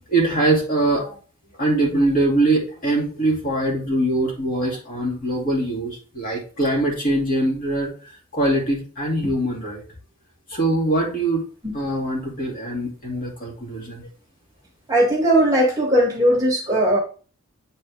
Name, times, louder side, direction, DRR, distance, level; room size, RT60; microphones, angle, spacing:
voice 1, 0.1-1.2 1.6-9.8 10.5-11.4 11.7-14.1, right 2 dB, 40° left, -2 dB, 2.4 m, -22 dB
voice 2, 14.9-17.0, right 1 dB, 15° right, -3 dB, 2.1 m, -18 dB
8.4 x 4.2 x 3.4 m, 0.38 s
head